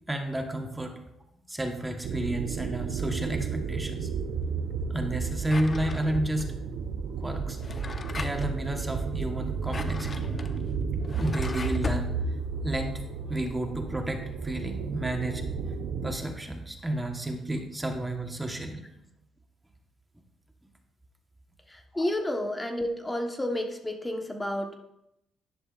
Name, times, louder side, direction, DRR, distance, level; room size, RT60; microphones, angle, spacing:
voice 1, 0.1-1.0 1.5-4.1 4.9-6.5 7.2-7.6 8.1-10.3 11.2-12.2 12.6-15.7 16.0-18.8 21.9-22.1, right 1 dB, 10° right, 4 dB, 1.2 m, -31 dB
sound 1, 2.0-16.1, right 5 dB, 75° right, 0.7 m, -32 dB
Drawer open or close, 5.4-6.4 7.5-8.6 9.5-12.1, left 3 dB, 35° left, 0.8 m, -36 dB
voice 2, 21.7-24.8, left 1 dB, 15° left, 3 dB, 1.1 m, -31 dB
11.0 x 10.5 x 2.5 m, 0.85 s
cardioid pair, 90°, 0 cm